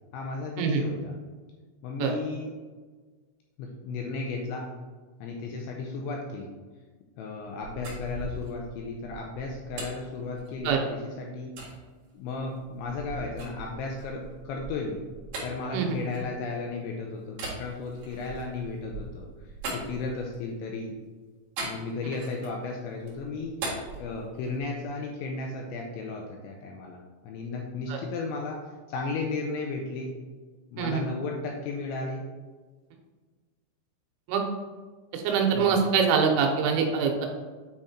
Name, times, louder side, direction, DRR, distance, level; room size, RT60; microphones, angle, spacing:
voice 1, 0.1-1.1 1.8-2.5 3.6-4.7 5.2-6.5 7.2-11.6 12.1-15.0 15.4-21.0 21.6-23.5 23.9-30.1 30.7-32.2 35.5-35.8, left 3 dB, 80° left, 1 dB, 2.7 m, -34 dB
sound 1, 7.6-10.9 11.6-11.7 12.3-16.7 17.3-20.5 21.6-22.7 23.0-24.8, right 3 dB, 55° right, 2.9 m, -40 dB
voice 2, 35.1-37.3, right 6 dB, 85° right, 2 dB, 3.4 m, -24 dB
8.9 x 3.6 x 4.3 m, 1.4 s
omnidirectional pair, 5.9 m